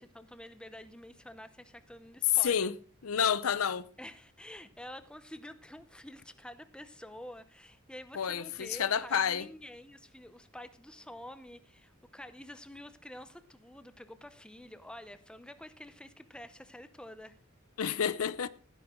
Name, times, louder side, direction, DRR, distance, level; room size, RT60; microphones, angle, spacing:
voice 1, 0.0-2.7 4.0-17.4, left 1 dB, 5° left, 0.7 m, -48 dB
voice 2, 2.4-2.7 3.0-3.9 8.2-9.5 17.8-18.5, left 7 dB, 85° left, 0.6 m, -29 dB
15.5 x 10.0 x 3.7 m
head